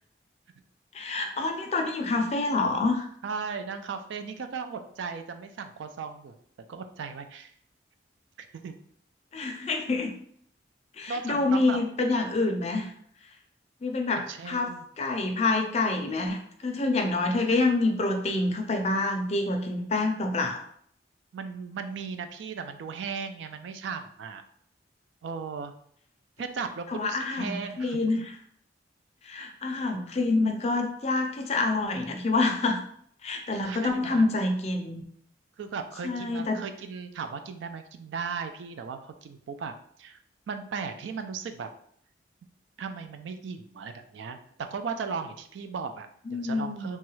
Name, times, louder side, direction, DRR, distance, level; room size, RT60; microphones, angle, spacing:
voice 1, 0.9-3.1 9.3-10.1 11.0-12.9 13.8-20.6 26.9-28.3 29.2-32.8 33.2-35.0 36.0-36.6 46.3-46.9, left 3 dB, 35° left, 3 dB, 0.4 m, -27 dB
voice 2, 3.2-6.3 6.7-7.5 8.4-8.7 11.1-11.8 14.1-14.8 21.3-24.4 25.2-25.7 26.4-28.0 29.7-29.8 33.5-34.3 35.6-40.2 40.5-41.7 42.8-47.0, right 5 dB, 75° right, 8 dB, 0.3 m, -37 dB
3.0 x 2.3 x 3.1 m, 0.64 s
head